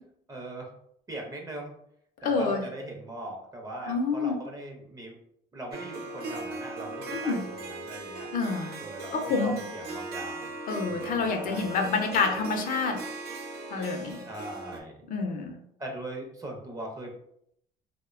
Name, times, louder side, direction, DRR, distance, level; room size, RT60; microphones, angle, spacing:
voice 1, 0.3-0.7 1.1-1.7 2.2-5.2 5.5-8.3 8.8-10.5 10.9-11.7 12.0-12.4 14.1-15.0 15.8-17.1, right 1 dB, 20° right, 0 dB, 0.6 m, -40 dB
voice 2, 2.2-2.6 3.9-4.4 7.1-7.4 8.3-8.8 9.1-9.6 10.7-13.0 13.7-14.2 15.1-15.6, left 4 dB, 55° left, 4 dB, 0.5 m, -28 dB
Harp, 5.7-14.8, right 2 dB, 70° right, 0.5 m, -39 dB
2.5 x 2.1 x 2.4 m, 0.73 s
cardioid pair, 110°, 17 cm